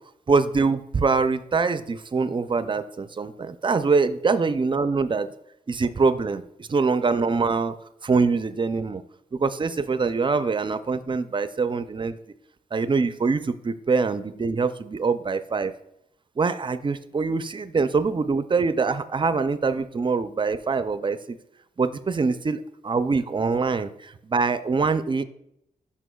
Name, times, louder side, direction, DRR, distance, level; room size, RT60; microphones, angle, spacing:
voice 1, 0.3-5.3 5.7-7.8 8.0-9.0 9.3-12.2 12.7-15.7 16.4-21.4 21.8-25.2, right 4 dB, 30° right, 12 dB, 0.4 m, -24 dB
11.0 x 5.5 x 2.3 m, 0.78 s
cardioid pair, 90°, 15 cm